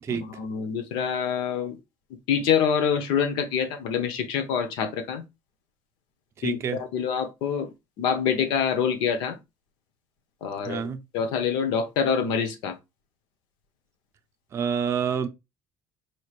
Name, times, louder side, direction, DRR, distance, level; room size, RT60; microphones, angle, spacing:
voice 1, 0.1-1.8 2.3-5.2 6.4-7.7 8.0-9.4 10.4-12.7, left 7 dB, 75° left, 0.8 m, -26 dB
voice 2, 6.4-6.8 10.6-11.0 14.5-15.3, right 7 dB, 35° right, 0.5 m, -28 dB
4.5 x 3.2 x 2.4 m
cardioid pair, 125°, 8 cm